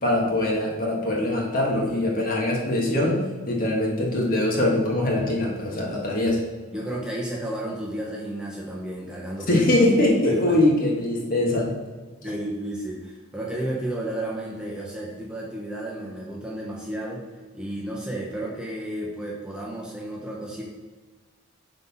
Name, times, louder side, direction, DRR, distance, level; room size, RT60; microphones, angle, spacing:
voice 1, 0.0-3.2 3.5-6.4 9.5-11.7, left 1 dB, 45° left, -2 dB, 1.4 m, -22 dB
voice 2, 6.7-9.6 10.3-10.6 12.2-17.3 17.5-20.6, right 1 dB, 5° right, -4 dB, 0.9 m, -32 dB
5.4 x 4.1 x 5.5 m, 1.4 s
head